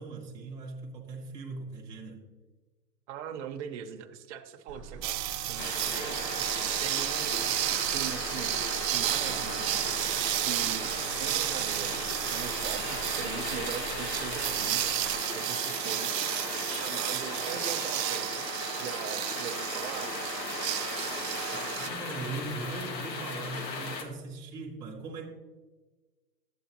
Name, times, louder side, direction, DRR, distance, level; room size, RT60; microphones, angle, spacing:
voice 1, 0.0-2.3 6.4-6.5 21.5-25.3, right 3 dB, 10° right, 0.7 m, -40 dB
voice 2, 3.1-6.3 6.8-7.4 7.9-8.6 8.9-10.2 10.4-12.0 12.3-14.8 15.3-18.5 18.8-20.2, right 8 dB, 45° right, 0.7 m, -41 dB
sound 1, 4.7-15.2, right 4 dB, 25° right, 0.3 m, -46 dB
sound 2, 5.0-21.9, right 15 dB, 75° right, 0.6 m, -32 dB
sound 3, 5.6-24.0, left 4 dB, 85° left, 1.6 m, -37 dB
11.5 x 8.2 x 2.9 m
hypercardioid pair, 145°, 50 cm